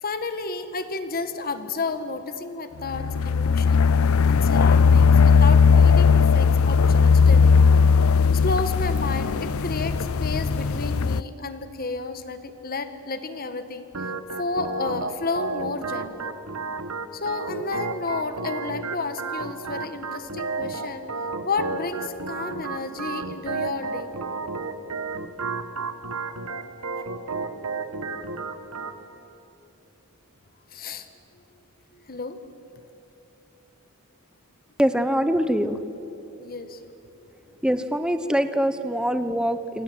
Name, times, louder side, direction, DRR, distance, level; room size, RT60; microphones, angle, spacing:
voice 1, 0.0-3.9 4.3-7.7 8.4-13.9 14.4-16.3 17.1-21.1 21.4-24.1 30.7-31.1 31.9-32.6 36.4-36.8, left 3 dB, 40° left, 10 dB, 1.6 m, -31 dB
sound 1, 2.9-11.2, left 5 dB, 65° left, 0.5 m, -18 dB
Organ, 13.9-29.0, right 4 dB, 80° right, 1.6 m, -32 dB
voice 2, 34.8-35.8 37.6-39.8, equal, 5° right, 10 dB, 1.0 m, -23 dB
28.0 x 26.0 x 8.0 m, 3.0 s
head